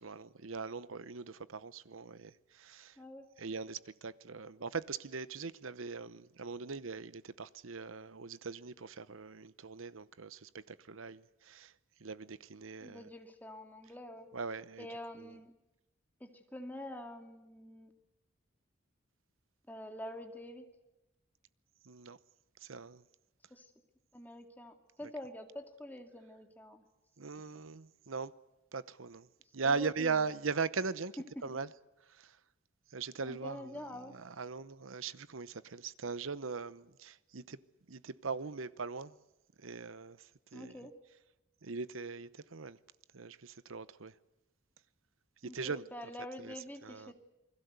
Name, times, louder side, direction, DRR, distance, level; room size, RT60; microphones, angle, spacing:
voice 1, 0.0-3.0 3.4-11.7 12.0-13.1 14.3-14.9 15.2-15.3 21.8-22.2 22.6-23.0 27.2-28.3 28.7-29.3 29.5-31.7 32.1-32.4 32.9-33.7 34.1-37.6 37.9-39.2 39.6-40.7 41.6-42.8 43.1-44.1 45.4-45.8 46.4-46.5 46.8-47.1, right 4 dB, 80° right, 0.9 m, -40 dB
voice 2, 3.0-3.3 12.8-14.3 14.8-15.5 16.2-17.9 19.7-20.6 23.5-23.7 24.1-26.8 27.5-27.6 29.6-30.2 31.4-31.6 33.2-34.1 40.5-40.9 45.4-47.1, left 1 dB, 10° left, 2.2 m, -46 dB
28.5 x 21.0 x 8.2 m
head